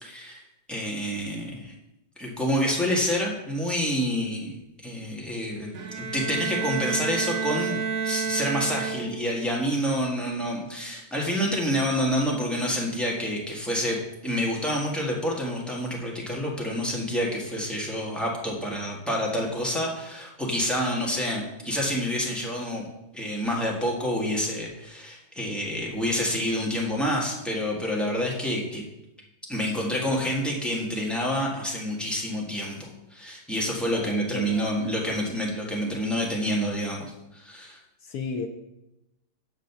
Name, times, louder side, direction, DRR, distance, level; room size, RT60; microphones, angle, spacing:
voice 1, 0.0-0.4 0.7-1.7 2.2-4.6 4.8-7.8 8.0-22.9 23.1-28.8 29.5-37.8, equal, ahead, -3 dB, 1.2 m, -28 dB
Bowed string instrument, 5.7-9.4, right 6 dB, 55° right, 1.3 m, -30 dB
voice 2, 33.9-34.7 38.0-38.5, left 5 dB, 80° left, 5 dB, 0.8 m, -34 dB
6.2 x 5.2 x 6.9 m, 0.91 s
omnidirectional pair, 2.4 m